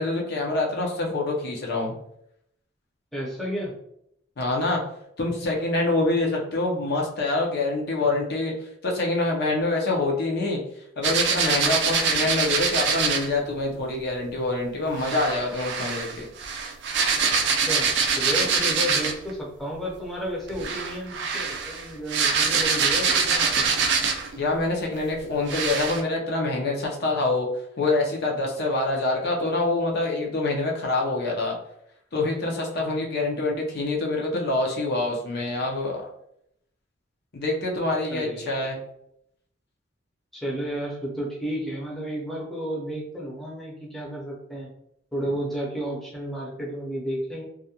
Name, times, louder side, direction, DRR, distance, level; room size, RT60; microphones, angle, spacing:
voice 1, 0.0-1.9 4.4-4.8 5.2-8.5 8.8-10.6 11.0-16.3 24.4-27.5 27.8-31.6 32.1-36.0 37.3-38.8, left 2 dB, 55° left, -1 dB, 0.5 m, -26 dB
voice 2, 3.1-3.7 17.6-23.7 38.1-38.5 40.3-44.7 45.1-47.4, equal, ahead, -4 dB, 0.6 m, -32 dB
sound 1, 11.0-13.3 15.0-19.3 20.5-24.4 25.0-25.1 25.5-26.0, right 5 dB, 60° right, 0.3 m, -24 dB
2.4 x 2.1 x 2.7 m, 0.73 s
head